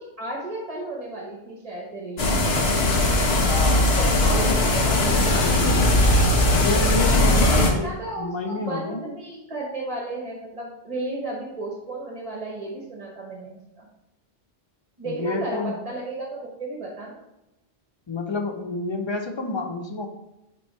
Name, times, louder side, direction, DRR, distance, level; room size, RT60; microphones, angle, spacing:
voice 1, 0.0-2.6 3.7-5.9 7.3-13.9 15.0-17.2, right 2 dB, 35° right, -2 dB, 1.0 m, -33 dB
sound 1, 2.2-7.7, left 1 dB, 65° left, 1.1 m, -19 dB
voice 2, 3.5-3.8 4.2-4.7 6.5-9.0 15.0-15.8 18.1-20.1, left 2 dB, 35° left, 5 dB, 0.5 m, -29 dB
6.9 x 3.1 x 4.6 m, 0.91 s
omnidirectional pair, 1.1 m